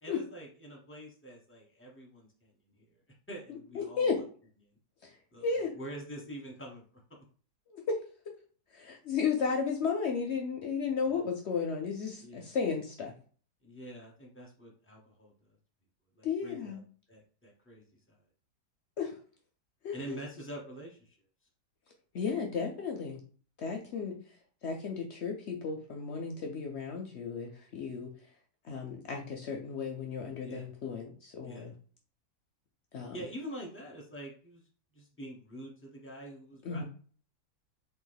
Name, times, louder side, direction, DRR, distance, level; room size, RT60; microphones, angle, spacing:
voice 1, 0.0-4.2 4.6-4.8 5.3-6.8 11.1-11.2 12.2-12.6 13.6-15.3 16.1-16.8 17.1-18.2 19.9-21.2 30.4-30.7 31.4-31.7 33.1-34.7 34.9-36.8, right 1 dB, 15° left, -1 dB, 0.5 m, -46 dB
voice 2, 3.8-4.2 5.0-5.1 5.4-5.7 7.7-8.0 8.7-13.1 16.2-16.8 19.0-19.1 19.8-20.1 22.1-23.2 23.6-24.2 24.6-28.1 28.7-31.7 32.9-33.2 36.6-36.8, left 5 dB, 65° left, 2 dB, 0.6 m, -34 dB
3.5 x 2.6 x 3.9 m, 0.43 s
omnidirectional pair, 1.7 m